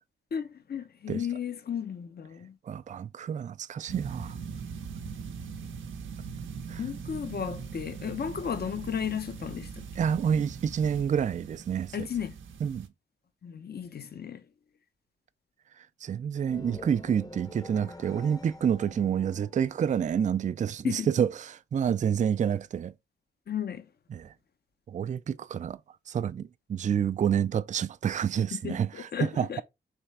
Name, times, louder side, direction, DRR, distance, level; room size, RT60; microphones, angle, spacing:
voice 1, 0.3-2.5 6.8-9.8 11.9-12.3 13.4-14.4 20.8-21.1 23.5-23.8 28.5-29.6, left 8 dB, 55° left, 0.8 m, -34 dB
voice 2, 2.7-4.4 6.7-6.8 10.0-12.1 12.6-12.9 16.0-22.9 24.1-24.3 24.9-25.8 26.1-29.6, right 8 dB, 40° right, 0.4 m, -28 dB
sound 1, 3.9-12.9, right 6 dB, 80° right, 0.6 m, -41 dB
sound 2, 16.5-20.4, left 2 dB, 20° left, 0.7 m, -47 dB
3.4 x 3.2 x 4.2 m
supercardioid pair, 50°, 20 cm